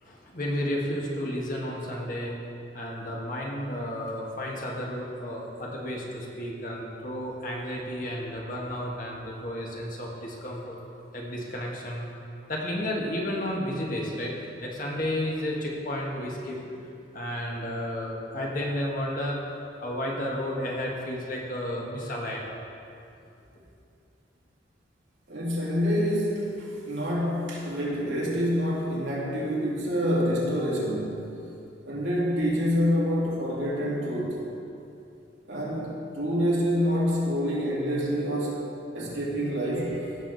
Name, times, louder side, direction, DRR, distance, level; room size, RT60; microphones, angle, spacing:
voice 1, 0.0-2.3 2.7-10.8 11.1-12.1 12.5-16.6 17.1-19.4 19.8-22.5, left 1 dB, 45° left, -2 dB, 1.6 m, -32 dB
voice 2, 25.3-31.3 31.9-34.4 35.5-38.6 38.9-40.1, equal, 90° right, -5 dB, 2.5 m, -27 dB
16.0 x 6.6 x 4.0 m, 2.7 s
head